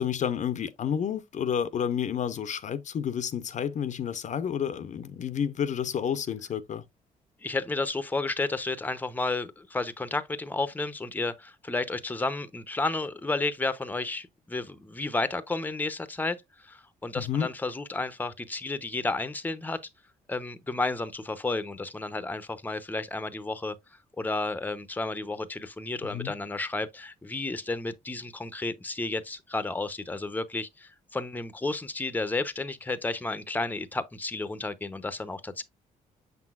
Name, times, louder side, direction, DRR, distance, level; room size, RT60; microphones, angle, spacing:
voice 1, 0.0-6.8 17.1-17.5 26.1-26.3, left 8 dB, 55° left, 0.7 m, -30 dB
voice 2, 7.4-19.8 20.3-23.8 24.2-35.6, left 3 dB, 10° left, 0.7 m, -32 dB
6.8 x 6.0 x 2.4 m
cardioid pair, 90°, 15 cm